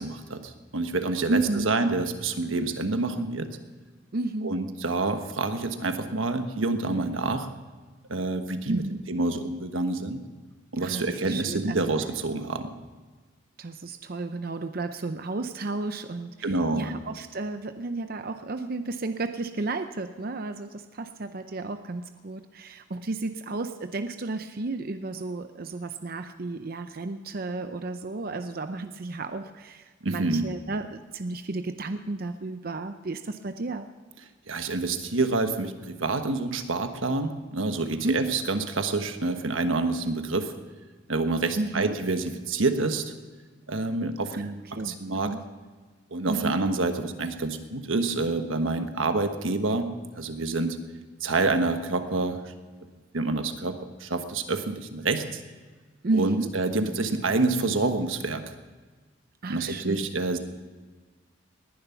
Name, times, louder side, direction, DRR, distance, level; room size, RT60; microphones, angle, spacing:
voice 1, 0.0-3.5 4.4-7.5 8.1-8.8 9.1-10.2 10.7-12.7 16.4-16.9 30.0-30.5 34.5-40.5 41.1-43.0 43.7-45.3 46.1-50.8 51.2-52.5 53.1-55.4 56.1-58.4 59.5-60.4, right 3 dB, 90° right, 7 dB, 1.3 m, -27 dB
voice 2, 1.3-1.7 4.1-4.6 8.7-9.0 10.8-11.9 13.6-33.9 38.0-38.4 41.6-42.0 44.3-45.4 46.3-46.6 56.0-56.5 59.4-60.1, right 2 dB, 50° right, 8 dB, 0.6 m, -32 dB
20.0 x 11.0 x 5.8 m, 1.4 s
head